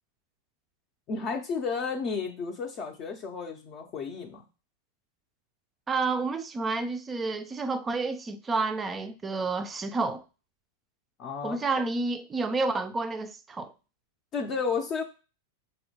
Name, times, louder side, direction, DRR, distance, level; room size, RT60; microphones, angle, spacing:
voice 1, 1.1-4.4 11.2-11.6 14.3-15.0, left 5 dB, 40° left, 0.5 m, -32 dB
voice 2, 5.9-10.2 11.4-13.7, right 3 dB, 20° right, 0.4 m, -30 dB
4.1 x 2.1 x 2.8 m
hypercardioid pair, 100°, 0 cm